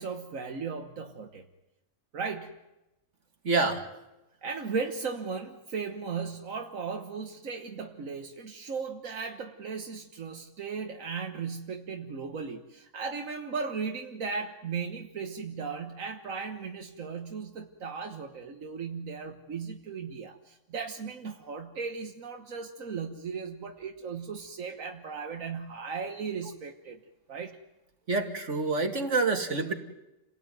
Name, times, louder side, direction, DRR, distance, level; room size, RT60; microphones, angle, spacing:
voice 1, 0.0-1.5 2.1-2.6 4.4-27.0 27.3-27.6, right 5 dB, 85° right, 4 dB, 1.7 m, -36 dB
voice 2, 3.4-3.9 28.1-29.7, right 3 dB, 65° right, 4 dB, 2.7 m, -27 dB
29.5 x 18.0 x 9.3 m, 0.98 s
omnidirectional pair, 1.4 m